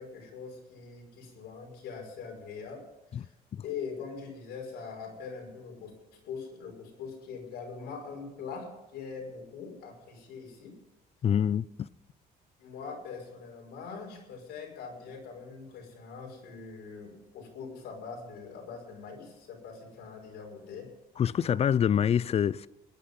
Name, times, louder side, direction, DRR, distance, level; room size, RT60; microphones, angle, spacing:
voice 1, 0.0-3.3 3.6-5.9 6.2-10.8 12.6-20.9, left 5 dB, 85° left, 5.8 m, -42 dB
voice 2, 11.2-11.9 21.2-22.7, left 8 dB, 35° left, 0.5 m, -26 dB
21.5 x 10.0 x 5.5 m
cardioid pair, 110°, 17 cm